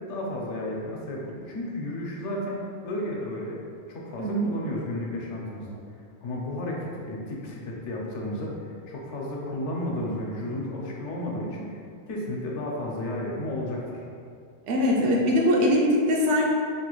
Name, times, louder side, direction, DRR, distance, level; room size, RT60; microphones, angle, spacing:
voice 1, 0.1-3.6 3.9-5.7 6.2-11.8 12.1-14.0, left 1 dB, 80° left, -2 dB, 0.9 m, -33 dB
voice 2, 14.7-16.5, left 1 dB, 90° right, -2 dB, 0.9 m, -22 dB
3.0 x 2.9 x 2.3 m, 2.3 s
omnidirectional pair, 1.2 m